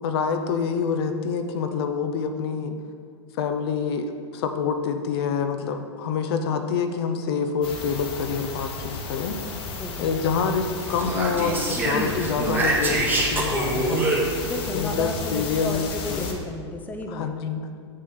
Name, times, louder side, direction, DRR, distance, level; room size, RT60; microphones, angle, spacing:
voice 1, 0.0-2.8 3.3-9.4 10.0-14.4 14.7-16.3 17.1-17.7, left 6 dB, 55° left, 6 dB, 0.7 m, -27 dB
sound 1, 7.6-16.3, left 3 dB, 35° left, 1.2 m, -34 dB
voice 2, 9.7-10.2 14.4-17.5, left 2 dB, 10° left, 4 dB, 0.6 m, -33 dB
Speech, 10.8-14.7, right 2 dB, 10° right, 1.2 m, -25 dB
7.8 x 6.5 x 3.8 m, 2.2 s
hypercardioid pair, 110°, 15 cm